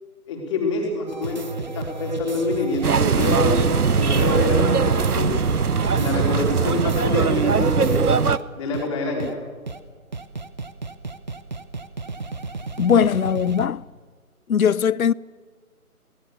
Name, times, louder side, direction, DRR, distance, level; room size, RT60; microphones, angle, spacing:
voice 1, 0.3-5.3 6.0-8.3 8.6-9.3, left 2 dB, 20° left, 4.3 m, -26 dB
sound 1, 1.1-8.4 8.7-8.9 9.2-9.3 9.7-9.8 10.1-13.7, right 3 dB, 30° right, 0.9 m, -33 dB
sound 2, 2.8-8.4, right 6 dB, 80° right, 0.9 m, -20 dB
voice 2, 12.8-13.8 14.5-15.1, left 7 dB, 70° left, 0.6 m, -19 dB
24.5 x 19.0 x 6.8 m
figure-of-eight pair, 155°, 44 cm